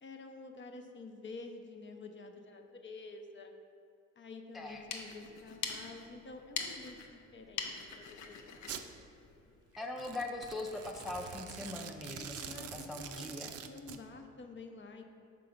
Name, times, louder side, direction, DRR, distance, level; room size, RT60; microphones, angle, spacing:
voice 1, 0.0-3.5 4.2-8.2 8.5-8.6 12.1-13.4 13.6-15.0, left 3 dB, 40° left, 4 dB, 0.7 m, -49 dB
sound 1, 4.6-9.9, left 6 dB, 75° left, 0.7 m, -44 dB
Domestic sounds home sounds, 8.7-8.9 9.9-14.0, right 8 dB, 55° right, 0.5 m, -45 dB
voice 2, 9.8-13.5, left 2 dB, ahead, 2 dB, 0.4 m, -41 dB
5.8 x 3.8 x 5.1 m, 2.6 s
cardioid pair, 90°, 30 cm